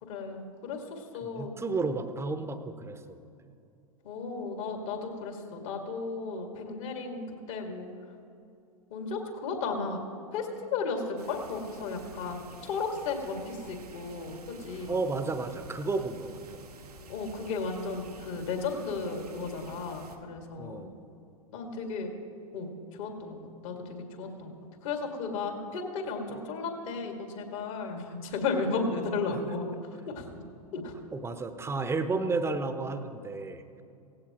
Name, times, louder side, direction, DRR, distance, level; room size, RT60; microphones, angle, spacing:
voice 1, 0.0-1.6 4.0-7.9 8.9-10.0 10.3-15.0 17.1-20.8 21.5-22.1 22.5-23.4 23.6-24.5 24.8-29.7 30.2-30.3 30.7-30.9, left 4 dB, 60° left, 3 dB, 2.2 m, -34 dB
voice 2, 1.2-3.2 14.9-16.7 20.6-21.0 29.3-29.5 31.1-33.6, right 3 dB, 15° right, 9 dB, 0.9 m, -32 dB
sound 1, 11.2-20.2, right 3 dB, 85° right, 1.2 m, -50 dB
17.0 x 15.5 x 3.0 m, 2.5 s
figure-of-eight pair, 95°, 19 cm